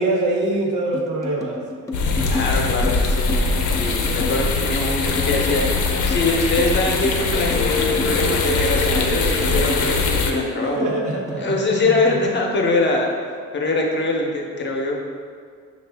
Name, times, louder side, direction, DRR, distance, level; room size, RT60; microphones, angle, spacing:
voice 1, 0.0-1.6 10.7-12.5, right 2 dB, 75° right, 0 dB, 0.8 m, -24 dB
sound 1, 0.9-11.4, left 3 dB, 10° left, 0.5 m, -31 dB
sound 2, 1.9-10.3, left 3 dB, 80° left, 0.6 m, -21 dB
voice 2, 2.2-5.6 6.1-10.9 11.4-13.1 13.5-15.0, left 2 dB, 35° left, 0 dB, 0.8 m, -23 dB
5.8 x 2.5 x 3.4 m, 2.1 s
cardioid pair, 90°, 30 cm